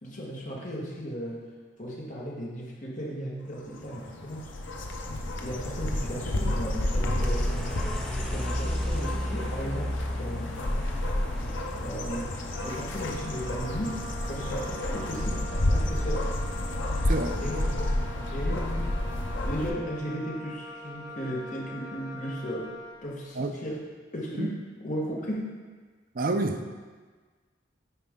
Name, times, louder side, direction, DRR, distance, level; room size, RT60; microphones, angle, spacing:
voice 1, 0.0-1.4 1.8-4.5 5.4-7.8 8.2-10.5 11.8-14.0 14.3-16.3 17.4-17.6 18.3-18.9 19.5-22.7 23.0-23.8 24.1-24.5 24.8-25.5, equal, 45° left, -4 dB, 1.5 m, -35 dB
sound 1, 3.6-19.7, left 1 dB, 80° left, 0.7 m, -30 dB
sound 2, 7.2-14.3, left 1 dB, 5° left, 0.6 m, -35 dB
Wind instrument woodwind instrument, 12.5-23.1, equal, 20° right, 1.1 m, -43 dB
voice 2, 17.1-17.4 17.7-17.8 23.4-23.5 24.4-24.5 26.1-26.7, right 2 dB, 50° right, 6 dB, 0.5 m, -29 dB
9.2 x 4.7 x 3.7 m, 1.4 s
head